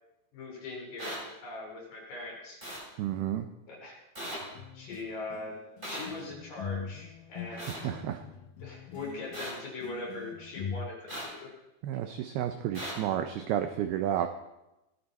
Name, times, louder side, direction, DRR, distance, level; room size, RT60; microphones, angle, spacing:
voice 1, 0.3-2.6 3.7-4.0 4.7-5.6 5.8-7.9 8.6-11.5, left 2 dB, 50° left, -1 dB, 5.4 m, -41 dB
sound 1, 1.0-1.2 2.6-2.8 4.1-4.4 5.8-6.0 7.6-7.8 9.3-9.5 11.1-11.3 12.7-12.9, equal, 10° right, 7.0 m, -38 dB
voice 2, 3.0-3.5 7.5-8.2 11.8-14.3, right 10 dB, 85° right, 8 dB, 2.2 m, -31 dB
sound 2, 4.4-10.8, left 7 dB, 85° left, 1.9 m, -42 dB
18.0 x 12.5 x 4.2 m, 0.94 s
omnidirectional pair, 5.4 m